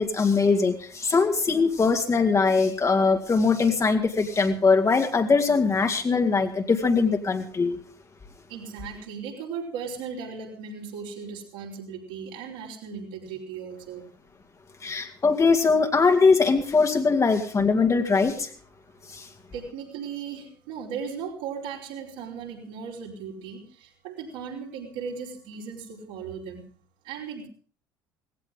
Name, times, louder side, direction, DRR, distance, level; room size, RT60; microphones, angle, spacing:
voice 1, 0.0-7.8 14.8-18.5 19.1-19.3, left 4 dB, 25° left, 5 dB, 2.3 m, -21 dB
voice 2, 8.5-14.0 19.5-26.6 27.0-27.5, right 6 dB, 65° right, -2 dB, 4.8 m, -37 dB
19.0 x 16.5 x 3.8 m, 0.43 s
figure-of-eight pair, 60°, 12 cm